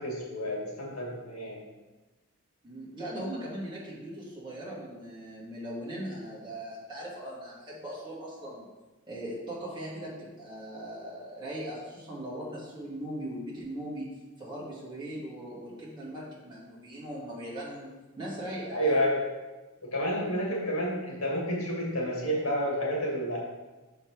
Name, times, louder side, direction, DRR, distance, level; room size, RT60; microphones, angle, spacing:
voice 1, 0.0-1.6 18.7-19.2 19.8-23.4, equal, 85° left, -3 dB, 2.1 m, -30 dB
voice 2, 2.6-8.7 9.1-14.1 14.4-19.0, right 1 dB, 20° right, -7 dB, 2.1 m, -39 dB
6.3 x 4.8 x 4.6 m, 1.2 s
head